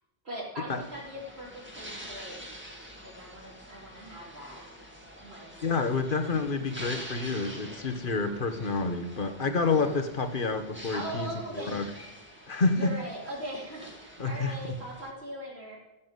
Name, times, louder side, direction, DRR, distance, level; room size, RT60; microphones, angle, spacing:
voice 1, 0.2-2.5 3.0-4.6 5.2-6.4 9.7-10.0 10.9-11.8 12.7-15.8, equal, 85° right, -4 dB, 4.3 m, -40 dB
sound 1, 0.7-15.1, equal, 10° right, 2.4 m, -46 dB
voice 2, 5.6-11.3 11.6-11.8 12.5-12.9 14.2-14.6, left 4 dB, 55° left, 7 dB, 1.5 m, -28 dB
16.0 x 7.5 x 7.8 m, 0.97 s
omnidirectional pair, 1.0 m